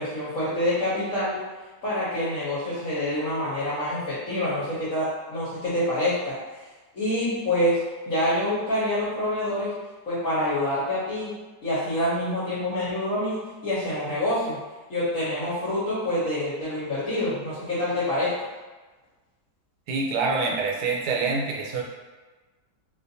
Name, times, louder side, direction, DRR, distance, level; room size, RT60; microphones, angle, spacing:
voice 1, 0.0-1.4 1.8-6.4 6.9-9.7 10.1-11.3 11.6-14.6 14.9-18.3, left 1 dB, 55° left, -10 dB, 1.1 m, -26 dB
voice 2, 19.9-21.8, right 4 dB, 75° right, -1 dB, 1.2 m, -26 dB
4.1 x 2.4 x 2.7 m, 1.2 s
omnidirectional pair, 2.0 m